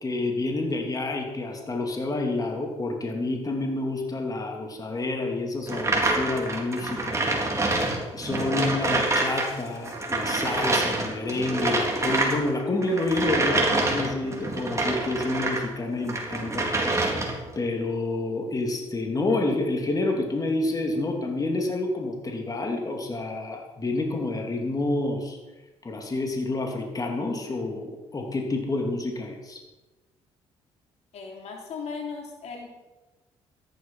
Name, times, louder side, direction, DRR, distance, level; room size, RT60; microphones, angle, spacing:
voice 1, 0.0-7.2 7.6-17.3 17.5-25.4 25.8-29.6, left 2 dB, 30° left, 2 dB, 3.0 m, -29 dB
sound 1, 5.7-9.5 9.8-15.7 16.0-17.5, right 2 dB, 25° right, 3.9 m, -26 dB
voice 2, 31.1-32.7, left 5 dB, 65° left, 1 dB, 3.4 m, -37 dB
14.0 x 11.5 x 5.7 m, 1.1 s
supercardioid pair, 70°, 12 cm